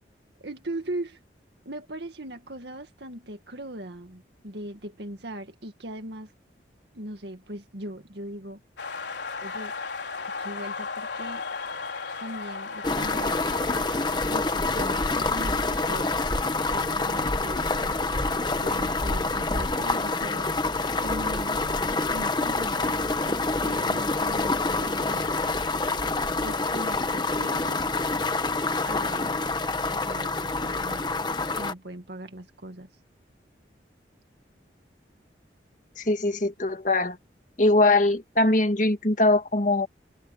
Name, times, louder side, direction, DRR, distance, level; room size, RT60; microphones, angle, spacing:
voice 1, 0.4-1.2 1.7-6.3 6.9-8.6 9.4-9.8 10.4-11.4 12.2-13.4 14.3-16.1 16.7-18.1 18.6-20.7 21.0-21.6 22.1-25.3 26.4-27.8 28.9-29.4 29.9-31.2 31.5-32.9, right 1 dB, 70° right, 2.0 m, -39 dB
sound 1, 8.8-20.5, left 4 dB, 75° left, 4.1 m, -38 dB
sound 2, 12.8-31.7, left 3 dB, 25° left, 1.1 m, -27 dB
voice 2, 36.0-37.2 37.6-39.9, left 2 dB, 45° left, 2.0 m, -22 dB
open air
head